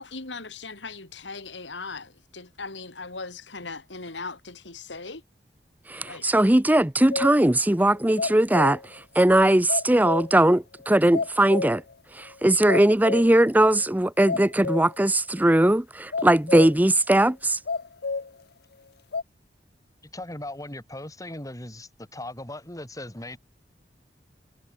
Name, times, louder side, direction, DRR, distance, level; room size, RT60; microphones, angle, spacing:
voice 1, 0.0-5.2 6.1-6.2, left 4 dB, 90° left, 3.6 m, -38 dB
voice 2, 5.9-11.8 12.1-15.8 16.2-17.6, right 1 dB, 10° right, 0.6 m, -20 dB
sound 1, 7.1-7.4 7.9-9.0 9.3-9.4 9.7-10.5 10.8-10.9 11.1-11.9 12.3-12.4 12.7-13.5 13.8-13.9 14.3-15.1 15.4-15.5 16.1-16.9 17.7-18.3 19.1-19.2, left 4 dB, 60° left, 0.7 m, -30 dB
voice 3, 20.1-23.4, left 1 dB, 20° left, 5.3 m, -38 dB
head